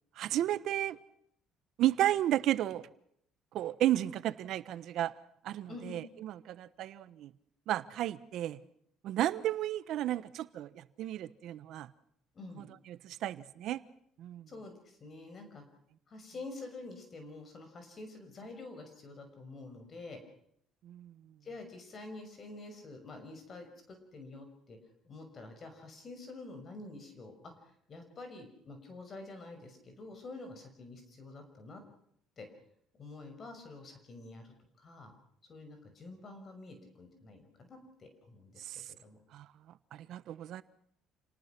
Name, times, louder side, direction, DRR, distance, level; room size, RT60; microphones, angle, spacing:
voice 1, 0.2-1.0 1.8-2.8 3.5-5.1 5.4-7.3 7.7-8.6 9.0-11.9 12.6-13.8 14.2-14.5 20.8-21.2 38.6-38.8 39.3-39.5 39.9-40.6, right 13 dB, 65° right, 1.2 m, -33 dB
voice 2, 5.7-6.0 12.3-12.6 14.5-15.6 16.1-20.2 21.4-24.8 25.0-31.8 32.4-32.5 33.0-35.1 35.5-39.2, left 2 dB, 35° left, 6.1 m, -48 dB
28.5 x 19.0 x 6.1 m
cardioid pair, 115°, 0 cm